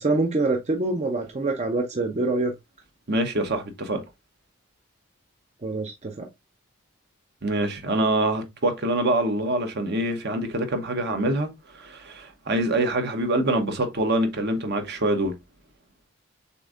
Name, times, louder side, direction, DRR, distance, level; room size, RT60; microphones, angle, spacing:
voice 1, 0.0-2.5 5.6-6.3, right 2 dB, 30° right, 0.6 m, -25 dB
voice 2, 3.1-4.0 7.4-11.5 11.7-15.3, right 1 dB, 50° right, 0.9 m, -25 dB
6.7 x 2.7 x 2.4 m
head